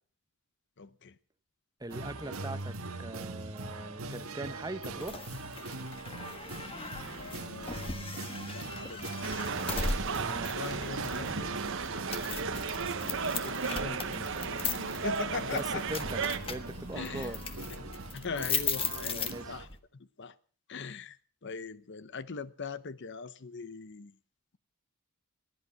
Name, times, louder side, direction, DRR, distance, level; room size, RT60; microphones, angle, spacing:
voice 1, 0.8-1.2 7.2-8.1 8.4-9.2 10.4-11.6 13.2-15.9 16.9-17.3 17.7-17.9 18.1-20.4 20.7-24.2, left 4 dB, 55° left, 0.8 m, -41 dB
voice 2, 1.8-5.2 9.7-10.5 15.5-15.6 15.9-16.2 16.5-17.4 19.0-19.6, right 2 dB, 15° right, 0.9 m, -41 dB
sound 1, 1.9-19.6, right 3 dB, 85° right, 1.5 m, -42 dB
sound 2, 4.8-19.8, left 5 dB, 25° left, 1.4 m, -38 dB
sound 3, 9.2-16.4, right 5 dB, 60° right, 1.1 m, -35 dB
19.0 x 11.0 x 5.7 m
head